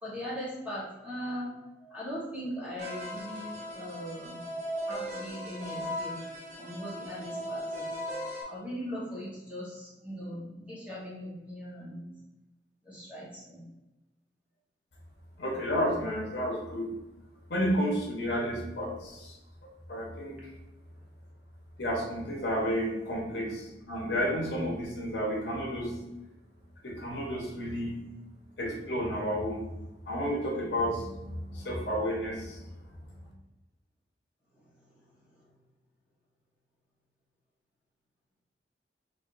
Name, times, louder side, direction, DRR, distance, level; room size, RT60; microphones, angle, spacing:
voice 1, 0.0-4.4 4.8-6.2 6.6-7.9 8.5-12.1 12.8-13.6 34.5-35.0 35.3-35.5, equal, 10° right, -7 dB, 1.0 m, -40 dB
sound 1, 2.8-8.4, equal, 40° right, 0.7 m, -38 dB
voice 2, 15.4-16.9 17.5-19.4 19.9-20.3 21.8-25.9 26.8-27.9 28.6-29.6 30.1-32.6, equal, 75° left, -2 dB, 1.0 m, -31 dB
4.5 x 2.6 x 2.6 m, 1.0 s
head